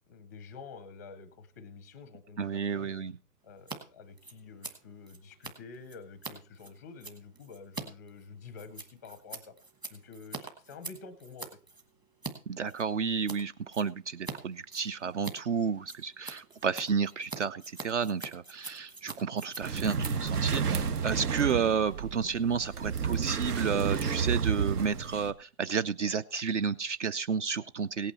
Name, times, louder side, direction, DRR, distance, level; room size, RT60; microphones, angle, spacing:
voice 1, 0.1-3.0 3.4-9.5 9.9-11.5, left 4 dB, 10° left, 12 dB, 0.6 m, -48 dB
voice 2, 2.4-3.1 12.5-28.1, right 6 dB, 50° right, 15 dB, 0.6 m, -31 dB
Scissors, 3.6-3.8 4.0-12.3 12.7-13.4 13.7-14.4 14.6-21.4, right 3 dB, 10° right, 1.1 m, -44 dB
sound 1, 19.6-25.3, right 6 dB, 70° right, 1.7 m, -31 dB
17.5 x 8.7 x 4.2 m, 0.36 s
hypercardioid pair, 160°, 47 cm